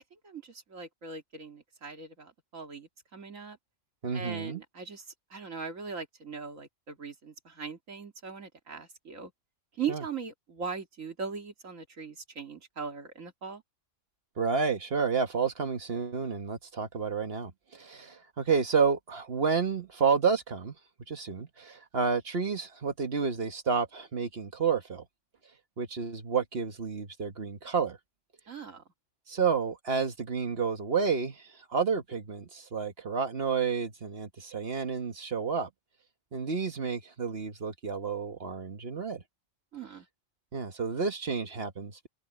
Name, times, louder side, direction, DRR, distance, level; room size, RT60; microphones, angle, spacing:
voice 1, 0.0-3.6 4.1-5.0 5.3-9.3 9.8-13.6 28.5-28.8 39.7-40.0, right 6 dB, 85° right, 2.6 m, -40 dB
voice 2, 4.0-4.6 9.9-10.0 14.4-20.7 21.1-25.0 25.8-28.0 29.3-31.4 31.7-35.7 36.3-39.2 40.5-42.1, right 5 dB, 50° right, 1.5 m, -30 dB
omnidirectional pair, 1.3 m